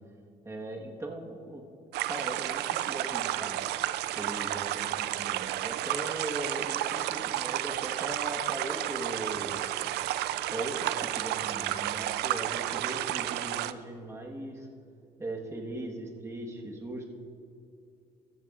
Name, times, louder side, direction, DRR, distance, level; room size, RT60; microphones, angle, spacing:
voice 1, 0.4-1.6 2.1-3.6 4.1-9.8 10.5-14.7 15.2-17.0, right 1 dB, 15° right, 0 dB, 1.3 m, -39 dB
sound 1, 1.9-13.7, right 14 dB, 75° right, 0.4 m, -32 dB
15.0 x 12.0 x 2.5 m, 2.6 s
cardioid pair, 110°, 17 cm